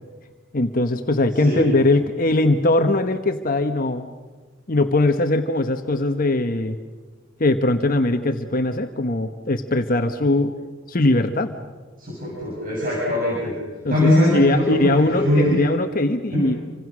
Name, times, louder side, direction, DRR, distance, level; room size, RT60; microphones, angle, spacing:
voice 1, 0.5-4.1 4.7-6.7 7.4-10.5 10.9-11.6 13.8-16.6, left 2 dB, 45° left, 7 dB, 1.2 m, -20 dB
voice 2, 12.0-13.6 13.9-15.6 16.3-16.4, left 1 dB, 45° right, -4 dB, 7.0 m, -21 dB
28.0 x 26.0 x 6.3 m, 1.3 s
head